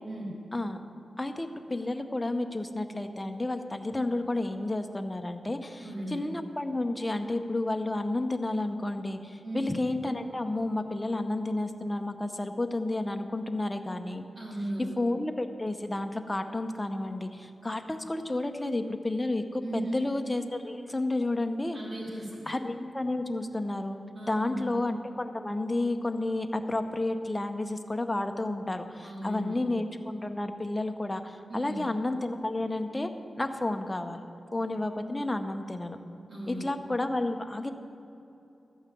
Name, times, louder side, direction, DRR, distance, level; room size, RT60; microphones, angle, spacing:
voice 1, 1.2-14.2 15.0-21.8 22.5-33.1 33.4-34.2 34.5-36.0 36.5-37.7, left 2 dB, 15° left, 7 dB, 0.7 m, -31 dB
voice 2, 5.8-6.3 9.4-9.8 14.3-14.9 19.6-20.0 21.7-22.5 24.1-24.7 29.0-29.7 31.5-31.9 36.3-36.7, right 1 dB, 50° right, -5 dB, 2.9 m, -37 dB
12.5 x 5.6 x 8.3 m, 2.9 s
wide cardioid pair, 85°, 0 cm